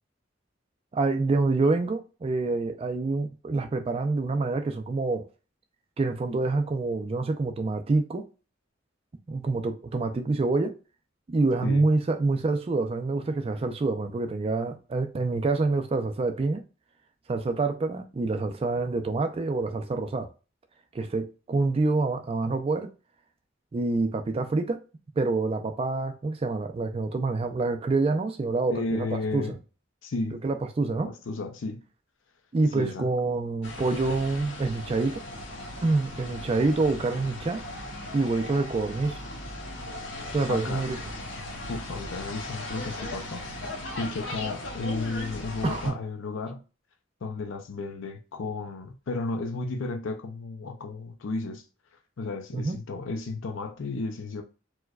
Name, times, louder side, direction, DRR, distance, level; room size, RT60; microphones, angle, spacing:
voice 1, 0.9-5.3 6.0-8.2 9.3-10.7 11.3-16.6 17.3-20.3 20.9-22.9 23.7-24.8 25.2-29.4 30.4-31.1 32.5-35.2 35.8-37.6 38.1-39.2 40.3-41.0 45.6-46.0 52.5-52.8, right 3 dB, 30° right, 0.3 m, -26 dB
voice 2, 28.7-29.6 30.0-30.4 30.9-31.8 32.7-33.1 40.5-40.9 41.7-43.4 44.0-46.6 47.2-51.7 52.2-54.4, left 3 dB, 85° left, 0.5 m, -33 dB
sound 1, 33.6-45.9, left 1 dB, 70° left, 1.0 m, -38 dB
4.5 x 2.1 x 2.3 m
head